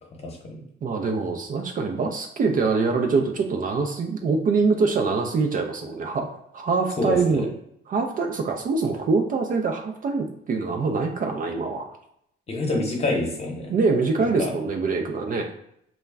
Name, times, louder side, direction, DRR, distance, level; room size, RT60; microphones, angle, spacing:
voice 1, 0.2-0.6 7.0-7.5 12.5-13.7 14.2-14.5, left 2 dB, 30° left, 0 dB, 0.8 m, -27 dB
voice 2, 0.8-6.3 6.5-7.5 7.9-11.9 13.7-15.5, right 4 dB, 45° right, 4 dB, 0.4 m, -24 dB
2.3 x 2.1 x 3.3 m, 0.74 s
cardioid pair, 90°, 20 cm